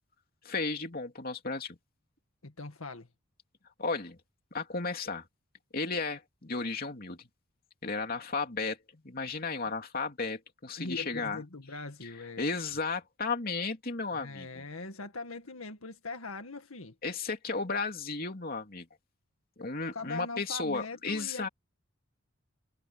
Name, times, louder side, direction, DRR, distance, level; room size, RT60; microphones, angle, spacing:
voice 1, 0.4-1.8 3.8-4.2 4.5-5.2 5.7-7.3 7.8-11.4 12.0-12.1 12.4-14.6 17.0-18.9 19.6-21.5, left 4 dB, 45° left, 2.9 m, -34 dB
voice 2, 2.4-3.1 10.8-12.5 14.1-17.0 19.9-21.5, left 3 dB, 80° left, 1.9 m, -41 dB
head